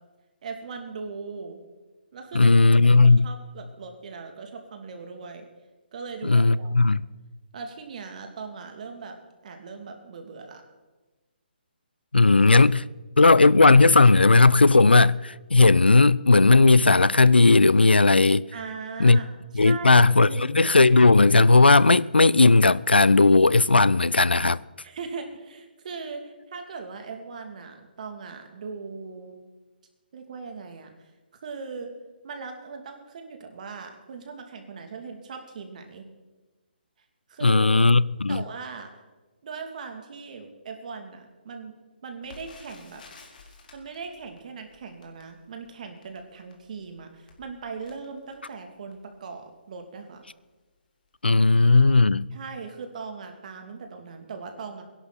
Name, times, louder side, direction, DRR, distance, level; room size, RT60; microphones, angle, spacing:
voice 1, 0.4-1.6 2.1-2.8 3.0-5.5 5.9-7.0 7.5-9.2 9.4-10.6 18.5-20.5 24.8-29.4 30.1-30.9 31.4-31.9 32.2-36.0 37.3-37.7 38.3-38.9 39.4-41.7 42.0-43.0 43.7-50.2 52.3-54.8, right 5 dB, 50° right, 2.6 m, -39 dB
voice 2, 2.3-3.3 6.2-7.0 12.1-12.8 13.2-18.5 19.0-19.2 19.5-24.6 37.4-38.4 51.2-52.3, left 3 dB, 90° left, 0.5 m, -16 dB
Crackle, 42.2-49.2 49.8-49.9 50.2-50.4 51.1-51.3 51.5-51.6, left 4 dB, 55° left, 2.9 m, -53 dB
22.0 x 11.0 x 4.1 m
figure-of-eight pair, 140°, 5 cm